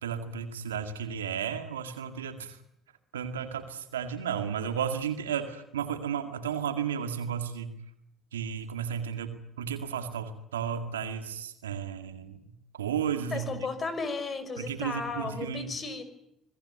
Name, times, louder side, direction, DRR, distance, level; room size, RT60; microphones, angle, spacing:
voice 1, 0.0-2.6 3.1-7.7 8.3-13.5 14.6-15.7, right 8 dB, 90° right, 8 dB, 2.1 m, -33 dB
voice 2, 13.3-16.0, left 4 dB, 40° left, 11 dB, 5.7 m, -34 dB
26.5 x 19.0 x 9.5 m, 0.78 s
hypercardioid pair, 55°, 0 cm